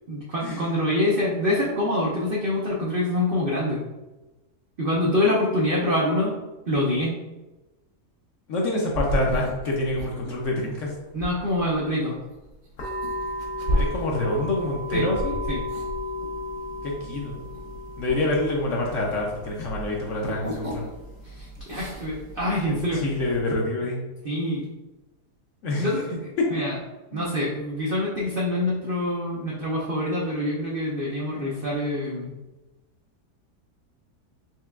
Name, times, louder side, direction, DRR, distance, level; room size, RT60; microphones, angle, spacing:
voice 1, 0.1-3.8 4.8-6.4 6.7-7.2 11.1-12.1 14.9-15.0 15.5-15.6 21.3-23.1 24.2-24.7 25.8-26.8 27.1-32.3, left 1 dB, 75° right, -4 dB, 0.5 m, -25 dB
voice 2, 8.5-10.9 13.7-15.6 17.1-17.4 18.0-20.8 22.7-24.0 25.6-25.9 26.4-26.5 27.1-27.3, left 2 dB, 65° left, -1 dB, 0.8 m, -26 dB
sound 1, 8.9-19.3 19.6-21.2 21.4-22.2, equal, 55° right, 1.0 m, -32 dB
sound 2, 12.8-23.4, left 1 dB, 85° left, 1.5 m, -36 dB
4.4 x 3.2 x 2.3 m, 1.1 s
omnidirectional pair, 1.7 m